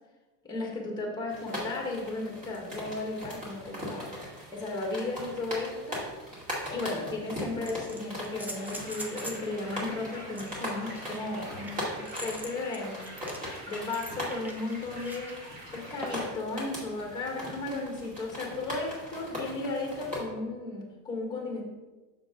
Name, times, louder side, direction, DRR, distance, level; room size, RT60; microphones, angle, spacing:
voice 1, 0.4-6.3 6.7-13.0 13.7-15.3 15.7-21.6, left 2 dB, 10° left, 0 dB, 1.6 m, -35 dB
sound 1, 1.3-20.2, equal, 20° right, 2.4 m, -40 dB
sound 2, 6.3-6.4 7.4-9.5 10.3-15.3 16.0-16.4 18.0-18.1, equal, 5° right, 0.4 m, -43 dB
sound 3, 8.5-16.3, right 1 dB, 50° right, 2.5 m, -47 dB
6.6 x 6.5 x 3.7 m, 1.2 s
cardioid pair, 155°, 36 cm